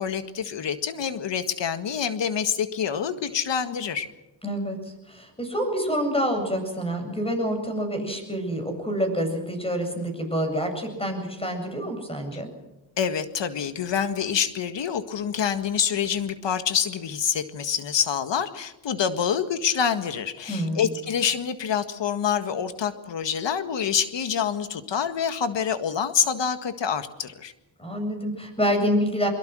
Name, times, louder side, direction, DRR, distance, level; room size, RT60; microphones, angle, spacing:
voice 1, 0.0-4.1 12.3-12.4 13.0-27.5, left 7 dB, 70° left, 10 dB, 1.8 m, -26 dB
voice 2, 4.4-12.5 20.5-20.9 27.8-29.3, equal, 10° left, 5 dB, 7.9 m, -27 dB
23.0 x 22.5 x 6.3 m, 0.96 s
cardioid pair, 90°, 45 cm